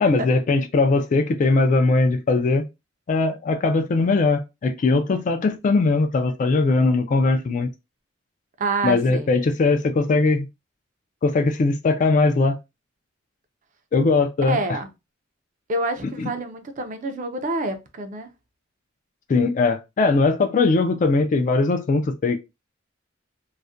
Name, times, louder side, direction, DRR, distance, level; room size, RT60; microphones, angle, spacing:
voice 1, 0.0-2.6 3.1-7.7 8.8-10.5 11.2-12.6 13.9-14.6 16.2-16.3 19.3-22.4, left 3 dB, 40° left, 0.3 m, -20 dB
voice 2, 8.6-9.3 14.4-14.9 15.7-18.3, right 2 dB, 40° right, 0.4 m, -27 dB
2.4 x 2.1 x 2.5 m
head